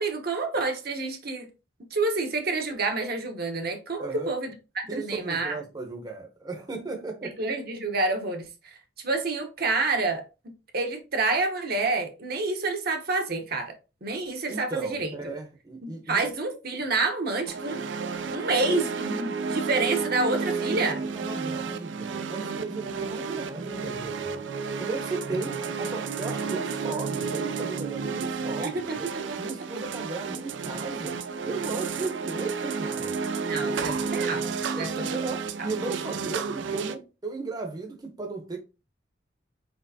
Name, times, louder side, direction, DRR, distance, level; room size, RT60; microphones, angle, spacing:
voice 1, 0.0-1.5 1.9-5.6 7.4-10.2 10.7-13.7 14.0-15.1 15.8-17.8 18.3-21.0 28.6-29.4 33.4-34.5 34.8-35.2, right 3 dB, 60° right, 0.9 m, -28 dB
voice 2, 4.0-4.3 4.9-7.4 14.5-16.2 18.4-18.5 18.8-18.9 20.6-24.4 24.8-29.1 29.4-31.2 31.5-33.2 33.5-34.4 34.7-38.6, right 3 dB, 25° right, 0.8 m, -36 dB
sound 1, 17.5-37.0, right 5 dB, 90° right, 0.4 m, -31 dB
4.5 x 4.3 x 2.7 m
head